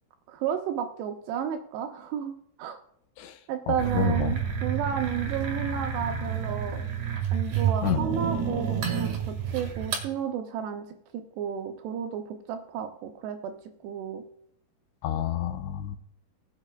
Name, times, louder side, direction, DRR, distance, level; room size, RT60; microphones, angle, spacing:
voice 1, 0.3-2.3 2.6-2.8 3.5-6.8 7.3-10.9 11.1-13.5 13.8-14.2, right 8 dB, 80° right, 5 dB, 2.6 m, -32 dB
voice 2, 3.7-4.5 7.8-8.0 15.0-16.0, left 10 dB, 80° left, 7 dB, 3.1 m, -29 dB
sound 1, 3.8-10.1, right 7 dB, 55° right, 2.6 m, -29 dB
20.0 x 8.2 x 2.2 m, 0.72 s
omnidirectional pair, 5.4 m